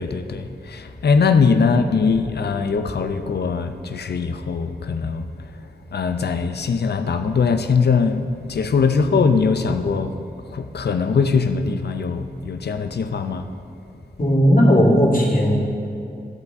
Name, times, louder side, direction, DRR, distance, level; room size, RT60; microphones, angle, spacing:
voice 1, 0.0-5.3 5.9-10.2 10.5-13.4, left 5 dB, 70° left, 8 dB, 0.6 m, -21 dB
voice 2, 14.2-15.5, equal, 50° left, -3 dB, 1.9 m, -16 dB
13.5 x 8.2 x 2.7 m, 2.7 s
cardioid pair, 45°, 18 cm